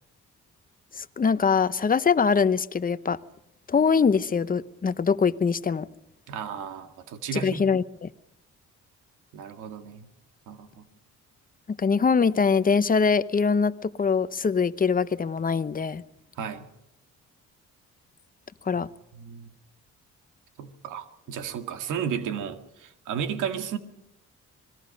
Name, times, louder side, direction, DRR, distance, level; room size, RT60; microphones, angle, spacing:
voice 1, 1.0-3.2 3.7-5.9 7.3-8.1 11.7-16.0 18.7-18.9, left 5 dB, 30° left, 0.9 m, -23 dB
voice 2, 6.3-7.6 9.3-10.1 10.5-10.8 16.4-16.6 18.7-18.8 19.1-19.5 20.6-23.8, right 7 dB, 90° right, 1.9 m, -33 dB
26.5 x 21.0 x 5.3 m
cardioid pair, 90°, 30 cm